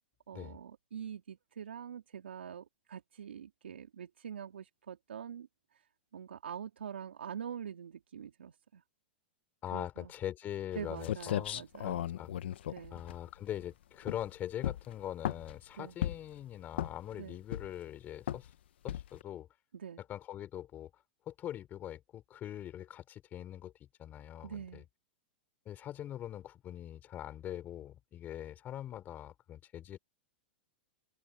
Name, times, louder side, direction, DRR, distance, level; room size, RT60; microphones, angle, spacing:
voice 1, 0.3-5.5 6.1-8.8 9.7-10.1 10.7-12.0 12.7-13.0 15.7-16.0 17.2-17.4 19.7-20.0 24.4-24.9, right 8 dB, 90° right, 3.2 m, -45 dB
voice 2, 9.6-12.3 12.9-18.5 18.8-19.5 20.0-20.9 21.3-23.7 24.0-24.8 25.6-30.0, left 11 dB, 30° left, 4.8 m, -42 dB
sound 1, 10.7-10.8 11.0-13.6 14.0-14.3 14.6-15.6 16.0-16.4 16.7-17.1 17.5-17.9 18.3-18.5 18.9-19.2, left 11 dB, 75° left, 1.1 m, -36 dB
open air
hypercardioid pair, 120°, 6 cm